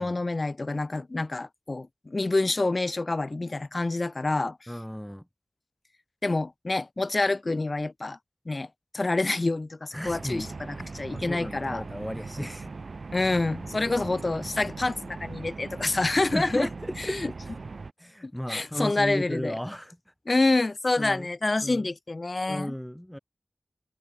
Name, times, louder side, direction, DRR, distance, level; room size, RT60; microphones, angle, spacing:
voice 1, 0.0-4.6 6.2-8.2 8.5-8.7 8.9-11.8 13.1-16.7 17.0-17.3 18.2-19.6 20.3-22.7, left 2 dB, 45° left, 3.0 m, -27 dB
voice 2, 4.7-5.2 9.9-12.7 16.3-17.5 18.0-20.0 21.0-21.3 21.6-21.9 22.5-23.2, equal, 5° left, 5.7 m, -35 dB
sound 1, 10.0-17.9, right 4 dB, 75° right, 4.0 m, -40 dB
wide cardioid pair, 80°, 0 cm